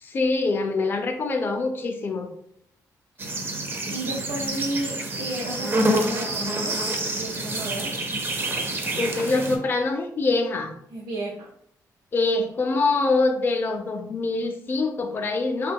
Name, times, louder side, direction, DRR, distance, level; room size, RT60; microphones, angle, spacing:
voice 1, 0.0-2.3 9.0-10.7 12.1-15.7, left 3 dB, 30° left, 4 dB, 0.3 m, -24 dB
sound 1, 3.2-9.6, right 1 dB, 30° right, 0.4 m, -27 dB
voice 2, 3.8-7.9 10.9-11.5, right 1 dB, 85° right, -5 dB, 0.5 m, -33 dB
2.6 x 2.2 x 3.4 m, 0.70 s
cardioid pair, 130°, 7 cm